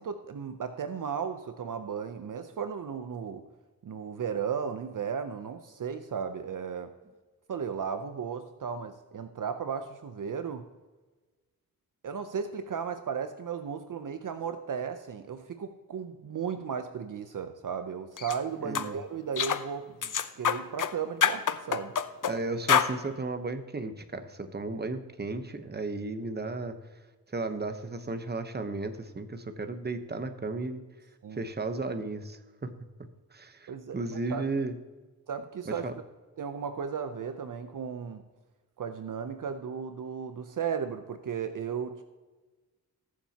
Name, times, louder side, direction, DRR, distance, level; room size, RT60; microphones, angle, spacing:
voice 1, 0.0-3.4 3.8-6.9 7.5-10.6 12.0-21.9 31.2-31.4 33.7-34.4 35.3-35.8 36.4-38.2 38.8-42.0, right 7 dB, 60° right, 8 dB, 0.7 m, -35 dB
sound 1, 18.2-18.4 18.7-18.9 19.4-19.6 20.0-20.9 21.2-22.3 22.7-22.9, left 8 dB, 60° left, 0.7 m, -26 dB
voice 2, 18.6-19.0 22.3-26.8 27.3-30.8 31.3-32.7 33.3-34.7 35.7-35.9, right 3 dB, 25° right, 8 dB, 1.0 m, -34 dB
20.0 x 7.2 x 2.9 m, 1.3 s
cardioid pair, 80°, 36 cm